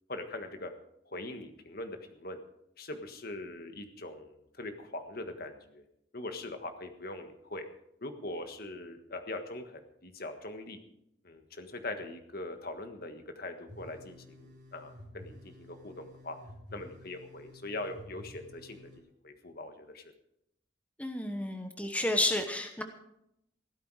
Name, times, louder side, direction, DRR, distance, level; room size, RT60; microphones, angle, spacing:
voice 1, 0.1-0.7 1.1-2.4 2.8-5.8 6.1-7.7 8.0-10.8 11.2-16.4 16.7-18.9 19.2-20.0, left 2 dB, 50° left, 7 dB, 1.5 m, -42 dB
sound 1, 13.7-19.0, left 1 dB, 45° right, 4.6 m, -52 dB
voice 2, 21.0-22.8, left 1 dB, 5° left, 5 dB, 1.0 m, -31 dB
15.5 x 13.0 x 4.8 m, 0.78 s
head